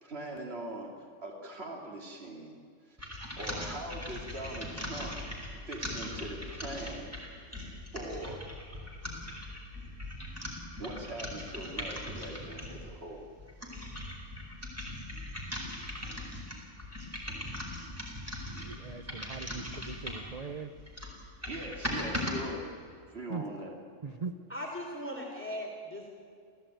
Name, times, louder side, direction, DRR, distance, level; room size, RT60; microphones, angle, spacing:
voice 1, 0.0-2.5 2.9-3.0 3.4-5.4 5.7-7.1 7.9-8.4 10.8-13.3 21.4-22.7 23.1-23.8, right 1 dB, 50° right, 0 dB, 3.0 m, -41 dB
sound 1, 3.0-12.8 13.4-20.4 20.8-22.4, left 1 dB, 10° right, 4.6 m, -40 dB
voice 2, 18.6-20.7 23.3-23.4 24.0-24.3, right 4 dB, 35° right, 7 dB, 0.8 m, -40 dB
voice 3, 24.5-26.1, equal, 10° left, 0 dB, 3.4 m, -38 dB
28.0 x 15.5 x 9.1 m, 2.2 s
omnidirectional pair, 1.3 m